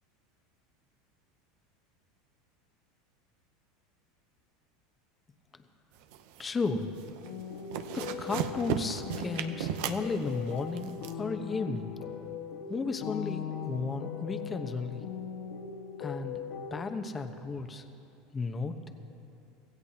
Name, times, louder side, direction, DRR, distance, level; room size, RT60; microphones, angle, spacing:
sound 1, 6.0-6.7 7.0-7.3 7.6-11.1, right 9 dB, 70° right, 0.8 m, -35 dB
voice 1, 6.4-6.9 7.9-12.0 12.7-15.0 16.0-16.4 16.7-17.8 18.3-18.9, left 4 dB, 20° left, 7 dB, 1.0 m, -34 dB
sound 2, 7.2-16.9, left 7 dB, 65° left, 1.4 m, -40 dB
25.0 x 16.0 x 2.9 m, 2.8 s
supercardioid pair, 120°, 0 cm